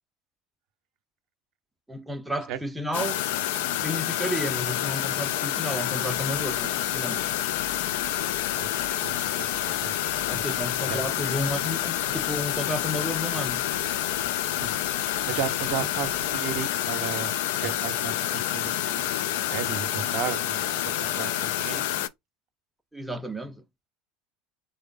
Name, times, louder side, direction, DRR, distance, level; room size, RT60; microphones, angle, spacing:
voice 1, 1.9-3.2 3.8-7.3 10.3-13.7 22.9-23.6, equal, 5° right, 0.5 m, -32 dB
sound 1, 2.9-22.1, left 12 dB, 65° left, 0.3 m, -28 dB
sound 2, 6.0-16.6, equal, 80° left, 0.7 m, -50 dB
voice 2, 8.5-10.4 10.8-11.0 14.6-14.7 15.2-17.3 17.6-19.1 19.5-21.8, right 9 dB, 55° right, 0.5 m, -35 dB
3.1 x 2.0 x 3.5 m
figure-of-eight pair, 75°, 0 cm